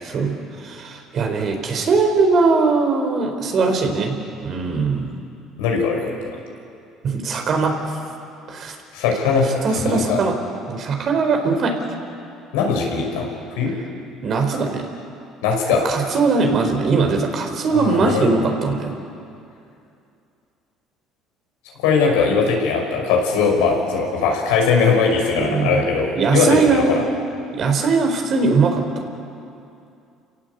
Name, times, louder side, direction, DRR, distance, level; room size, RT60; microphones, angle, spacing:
voice 1, 0.0-5.1 7.0-7.9 8.5-8.7 9.6-10.3 10.7-11.8 14.2-14.9 15.8-18.9 25.3-25.8 26.1-27.0 27.5-29.0, right 4 dB, 50° right, 4 dB, 4.5 m, -20 dB
voice 2, 5.6-6.0 8.9-10.2 12.5-13.3 13.6-13.7 15.4-15.9 17.7-18.3 21.8-27.0, left 5 dB, 85° left, 0 dB, 5.8 m, -20 dB
29.0 x 17.5 x 8.4 m, 2.5 s
supercardioid pair, 80°, 0 cm